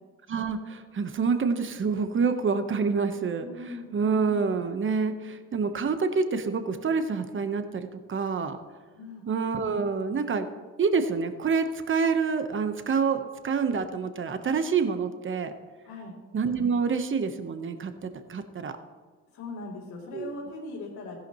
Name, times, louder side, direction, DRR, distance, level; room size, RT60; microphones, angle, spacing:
voice 1, 0.3-3.4 3.9-8.6 9.3-10.5 10.8-15.5 16.3-18.7 20.1-20.3, right 5 dB, 40° right, 8 dB, 1.1 m, -27 dB
voice 2, 3.4-4.0 8.9-9.2 15.8-16.1 19.3-21.2, left 2 dB, 80° left, -7 dB, 3.3 m, -39 dB
15.5 x 11.0 x 3.1 m, 1.4 s
cardioid pair, 90°, 31 cm